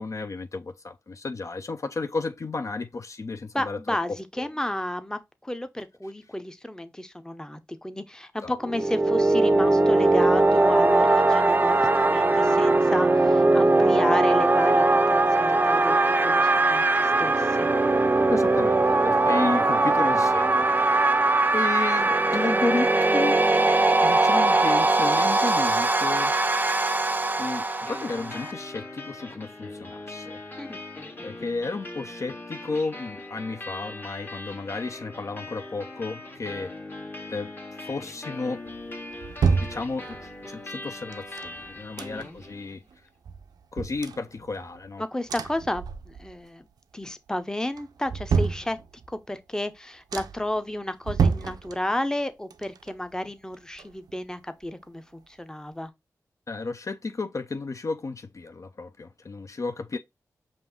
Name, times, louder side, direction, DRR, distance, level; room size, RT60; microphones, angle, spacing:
voice 1, 0.0-4.0 4.4-4.5 8.4-8.5 18.3-21.2 21.5-23.4 24.0-26.3 27.4-30.8 31.2-36.7 37.3-37.5 37.8-38.6 39.6-40.2 40.4-42.8 43.7-45.0 56.5-60.0, left 3 dB, 55° left, 0.4 m, -33 dB
voice 2, 3.5-17.7 30.6-30.8 42.1-42.3 45.0-46.7 46.9-48.8 49.1-55.9, left 1 dB, 10° left, 0.7 m, -32 dB
sound 1, 8.6-28.5, right 2 dB, 30° right, 0.4 m, -21 dB
sound 2, 27.8-42.8, left 2 dB, 35° left, 1.4 m, -40 dB
sound 3, 38.7-40.4 41.1-42.5 42.9-43.0 43.2-44.9 45.3-46.5 46.8-47.3 47.7-49.2 49.7-49.8 50.1-50.6 51.0-52.2 52.5-54.3 54.6-54.7, right 5 dB, 85° right, 0.4 m, -30 dB
5.2 x 2.6 x 3.5 m
cardioid pair, 45°, 6 cm